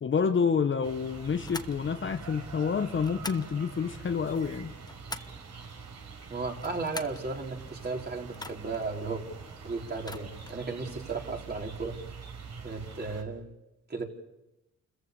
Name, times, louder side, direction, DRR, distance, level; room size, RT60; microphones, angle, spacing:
voice 1, 0.0-4.7, left 6 dB, 40° left, 1.2 m, -28 dB
sound 1, 0.8-13.2, right 5 dB, 60° right, 5.6 m, -45 dB
sound 2, 1.4-1.8 3.0-3.5 4.6-5.4 6.5-7.2 8.3-8.9 9.9-10.6, left 2 dB, 15° left, 1.1 m, -42 dB
voice 2, 6.3-9.2 9.6-12.0 12.6-13.5 13.9-14.0, right 4 dB, 35° right, 4.6 m, -35 dB
29.0 x 14.5 x 7.0 m
cardioid pair, 90°, 30 cm